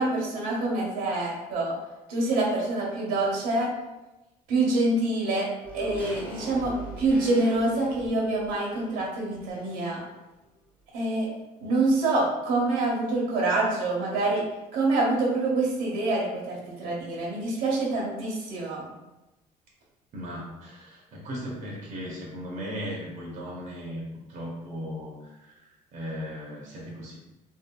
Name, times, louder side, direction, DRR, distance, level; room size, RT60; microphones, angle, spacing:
voice 1, 0.0-1.7 2.1-3.7 4.5-5.5 5.7-10.0 10.9-11.3 11.6-14.4 14.7-18.8, right 2 dB, 80° right, -3 dB, 0.9 m, -26 dB
sound 1, 5.6-10.1 10.4-10.5, equal, 10° left, 0.7 m, -42 dB
voice 2, 20.1-24.0 24.3-25.5 25.9-27.2, equal, 55° right, -3 dB, 0.7 m, -37 dB
2.7 x 2.5 x 2.2 m, 1.0 s
cardioid pair, 95°, 16 cm